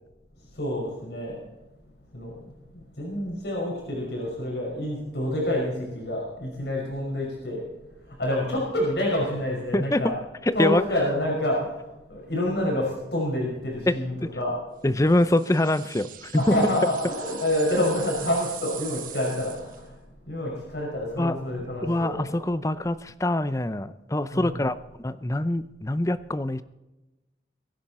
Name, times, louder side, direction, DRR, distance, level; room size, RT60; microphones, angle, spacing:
voice 1, 0.5-1.5 2.1-7.7 8.0-10.1 10.5-14.5 16.3-22.3 24.3-24.6, left 1 dB, 65° left, -2 dB, 5.6 m, -28 dB
voice 2, 10.5-10.8 13.9-14.0 14.2-14.3 14.8-16.6 21.2-21.4 21.8-26.6, left 1 dB, 15° left, 14 dB, 0.6 m, -24 dB
sound 1, 15.0-19.9, right 10 dB, 50° right, 1.5 m, -41 dB
22.5 x 10.5 x 4.3 m, 1.0 s
head